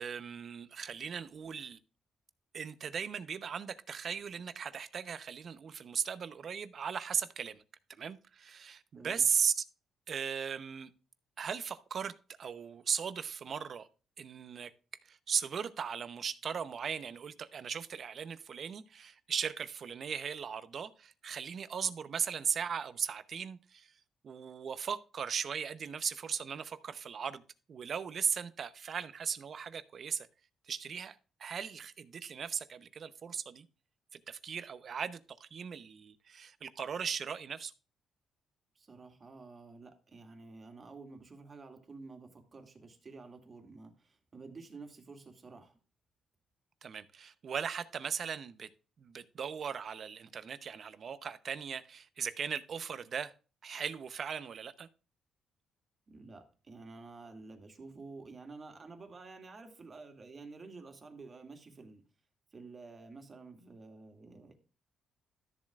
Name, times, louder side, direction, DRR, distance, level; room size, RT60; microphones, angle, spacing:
voice 1, 0.0-1.8 2.5-7.6 8.0-9.6 10.1-10.9 11.4-12.1 12.4-13.9 14.2-14.7 15.0-23.9 24.2-27.4 27.7-30.3 30.7-33.7 34.3-37.7 46.8-48.7 49.0-53.3 53.6-54.9, right 7 dB, 50° right, 0.8 m, -37 dB
voice 2, 8.9-9.3 38.7-45.8 56.1-62.1 62.5-64.5, right 3 dB, 35° right, 2.3 m, -50 dB
13.0 x 7.3 x 2.4 m
cardioid pair, 90°, 0 cm